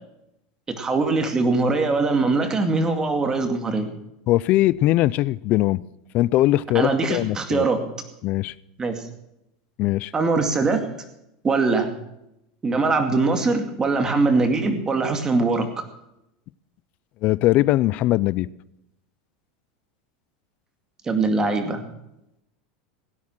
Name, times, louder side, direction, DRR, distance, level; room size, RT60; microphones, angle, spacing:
voice 1, 0.7-3.9 6.7-7.9 8.8-9.0 10.1-10.9 11.4-11.9 12.6-15.7 21.0-21.8, right 3 dB, 20° right, 6 dB, 2.3 m, -22 dB
voice 2, 4.3-5.8 6.1-7.6 8.2-8.5 9.8-10.1 17.2-18.5, left 16 dB, 45° left, 21 dB, 0.5 m, -20 dB
17.5 x 9.8 x 6.1 m, 0.84 s
supercardioid pair, 140°, 4 cm